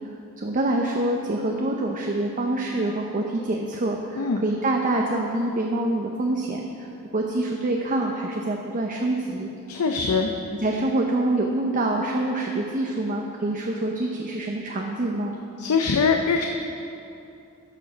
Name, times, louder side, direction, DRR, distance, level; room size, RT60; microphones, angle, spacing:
voice 1, 0.4-6.9 7.1-9.5 10.6-15.4, right 2 dB, 35° right, 1 dB, 0.6 m, -26 dB
voice 2, 9.7-10.3 15.6-16.5, left 5 dB, 90° left, 4 dB, 0.5 m, -22 dB
12.5 x 6.5 x 5.0 m, 2.6 s
head